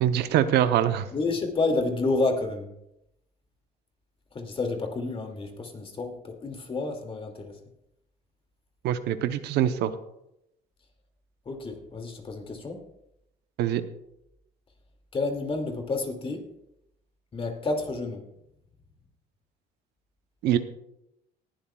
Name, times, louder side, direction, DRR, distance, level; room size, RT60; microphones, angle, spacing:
voice 1, 0.0-1.1 8.8-9.9 13.6-13.8 20.4-20.6, right 11 dB, 80° right, 10 dB, 0.8 m, -23 dB
voice 2, 1.1-2.7 4.3-7.6 11.5-12.8 15.1-16.5 17.3-18.2, left 3 dB, 35° left, 4 dB, 2.3 m, -29 dB
19.0 x 11.5 x 2.3 m, 0.82 s
cardioid pair, 110°, 17 cm